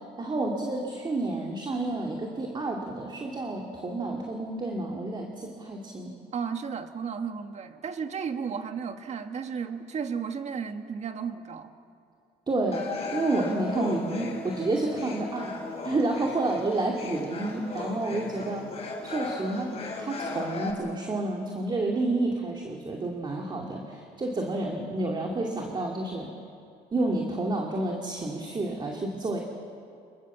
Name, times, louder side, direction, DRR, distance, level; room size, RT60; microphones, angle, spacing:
voice 1, 0.2-6.1 12.5-15.6 15.8-18.7 19.0-19.7 20.0-26.3 26.9-29.4, right 2 dB, 25° right, 0 dB, 2.7 m, -30 dB
voice 2, 6.3-11.8, right 6 dB, 40° right, 7 dB, 1.8 m, -34 dB
sound 1, 12.7-20.7, left 3 dB, 35° left, 5.4 m, -37 dB
26.5 x 21.5 x 7.4 m, 2.4 s
cardioid pair, 110°, 17 cm